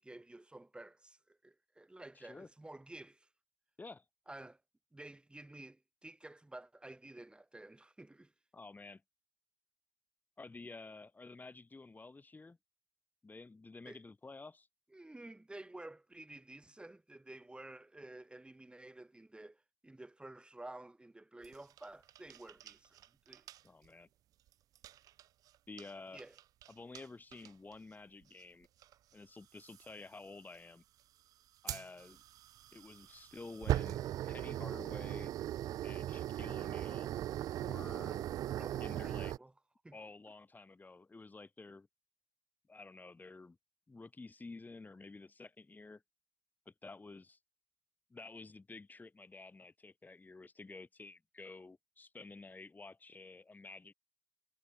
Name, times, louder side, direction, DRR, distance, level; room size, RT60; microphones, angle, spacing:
voice 1, 0.0-3.3 4.3-4.6 4.9-8.3 13.9-14.0 14.9-23.0 23.3-23.5 26.1-26.3 37.8-39.5 39.8-40.0, right 2 dB, 15° right, 4.1 m, -52 dB
voice 2, 2.2-2.5 3.8-4.0 8.5-9.0 10.4-12.6 13.2-14.7 23.6-24.1 25.7-26.2 26.7-28.7 29.1-30.8 31.6-32.2 32.7-35.3 35.8-37.1 37.6-38.2 38.8-39.3 39.9-41.9 42.7-43.6 43.9-46.0 46.7-47.4 48.1-53.9, left 3 dB, 25° left, 4.1 m, -51 dB
sound 1, 21.4-23.1 23.3-23.6 24.8-25.2 25.8-25.9 26.2-26.7 27.0-27.1 27.3-27.7 28.8-28.9 29.7-29.9 31.7-39.4, right 13 dB, 70° right, 0.5 m, -39 dB
supercardioid pair, 55°, 6 cm